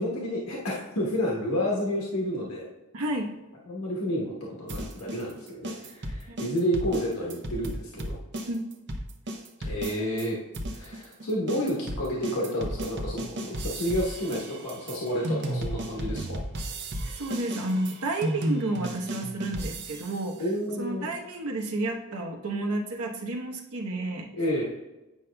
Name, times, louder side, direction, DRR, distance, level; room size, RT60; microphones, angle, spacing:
voice 1, 0.0-2.7 3.7-8.2 9.6-10.4 10.7-16.4 20.4-21.1 24.3-24.6, equal, 80° left, -4 dB, 1.2 m, -30 dB
voice 2, 2.9-3.3 6.3-6.4 8.5-8.6 17.0-20.4 20.7-24.3, right 2 dB, 85° right, 2 dB, 1.0 m, -31 dB
sound 1, 4.7-10.3 10.5-20.3, right 1 dB, 50° right, 0.7 m, -34 dB
9.0 x 5.5 x 2.3 m, 1.0 s
head